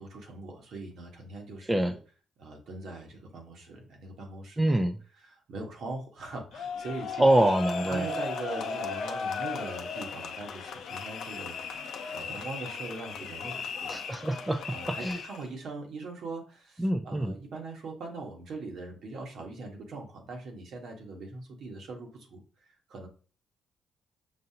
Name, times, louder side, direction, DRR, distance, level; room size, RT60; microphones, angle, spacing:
voice 1, 0.0-2.0 2.4-4.7 5.2-7.2 7.9-11.6 12.1-13.9 14.7-23.1, right 3 dB, 70° right, 1 dB, 1.3 m, -41 dB
voice 2, 4.6-5.0 7.2-8.0 13.9-14.6 14.9-15.2 16.8-17.3, right 1 dB, 15° right, 6 dB, 0.4 m, -25 dB
sound 1, 6.5-15.5, left 5 dB, 70° left, 0.6 m, -36 dB
5.4 x 2.5 x 2.8 m, 0.37 s
cardioid pair, 90°, 0 cm